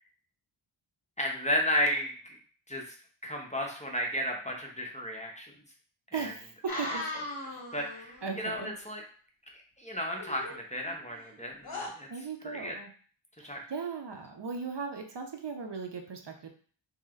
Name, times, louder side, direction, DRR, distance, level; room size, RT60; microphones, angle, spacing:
voice 1, 1.2-2.4 2.7-2.9 3.2-5.5 6.1-6.3 7.7-9.0 9.8-12.1 12.4-12.7 13.4-13.6, equal, 15° left, 0 dB, 0.8 m, -33 dB
voice 2, 6.1-7.1 7.5-7.6 8.2-8.7 12.1-12.9 13.4-16.5, right 5 dB, 55° right, 4 dB, 0.6 m, -38 dB
sound 1, 6.7-8.3 10.2-11.3 11.6-11.9, left 2 dB, 45° left, 1.0 m, -38 dB
3.1 x 2.9 x 3.7 m, 0.44 s
wide cardioid pair, 60°, 49 cm